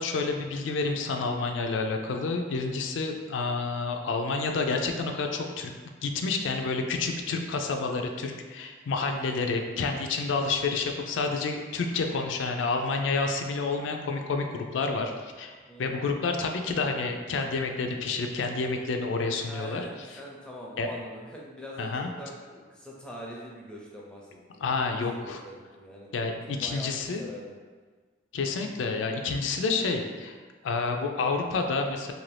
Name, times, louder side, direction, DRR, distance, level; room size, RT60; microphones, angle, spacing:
voice 1, 0.0-5.7 6.0-15.5 15.8-19.9 20.8-20.9 21.8-22.1 24.6-25.4 26.1-27.2 28.3-30.4 30.6-32.1, left 4 dB, 80° left, 4 dB, 0.4 m, -29 dB
voice 2, 15.7-16.0 19.5-26.1 26.5-27.5, equal, 5° left, -4 dB, 0.5 m, -43 dB
2.7 x 2.6 x 3.3 m, 1.4 s
head